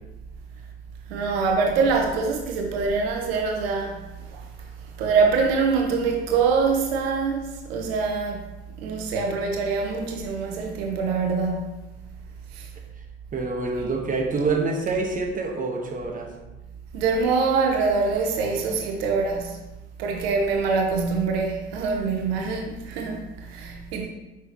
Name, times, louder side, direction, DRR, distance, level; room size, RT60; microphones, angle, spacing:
voice 1, 1.1-4.0 4.3-4.4 5.0-8.4 8.8-11.7 12.5-12.7 16.9-19.6 20.0-24.1, right 4 dB, 75° right, 0.9 m, -24 dB
voice 2, 13.3-16.3, right 3 dB, 25° right, 1.2 m, -26 dB
6.1 x 5.6 x 2.9 m
hypercardioid pair, 70°, 31 cm